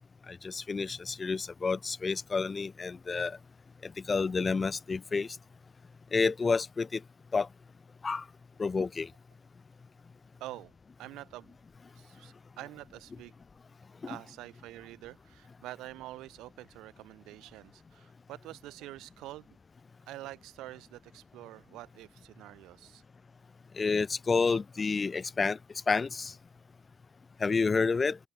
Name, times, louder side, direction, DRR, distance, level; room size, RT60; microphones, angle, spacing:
voice 1, 0.3-3.4 3.8-5.3 6.1-7.0 7.3-7.5 8.0-8.2 8.6-9.1 23.8-25.6 25.9-26.3 27.4-28.2, left 4 dB, 30° left, 0.6 m, -29 dB
voice 2, 10.4-10.7 11.0-11.5 12.0-13.3 14.1-19.5 20.1-23.0, right 16 dB, 75° right, 6.0 m, -46 dB
open air
supercardioid pair, 75°, 0 cm